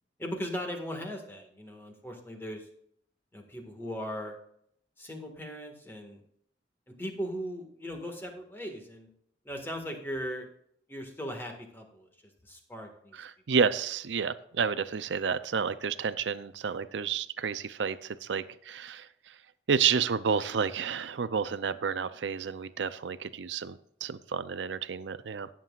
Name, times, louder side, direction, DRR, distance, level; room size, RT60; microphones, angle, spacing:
voice 1, 0.2-2.7 3.3-4.4 5.0-6.2 7.0-9.1 9.5-10.5 10.9-12.1 12.4-13.2, equal, 15° left, 2 dB, 1.8 m, -38 dB
voice 2, 13.1-19.3 19.7-25.5, right 6 dB, 85° right, 14 dB, 0.5 m, -30 dB
18.5 x 7.4 x 2.4 m, 0.70 s
head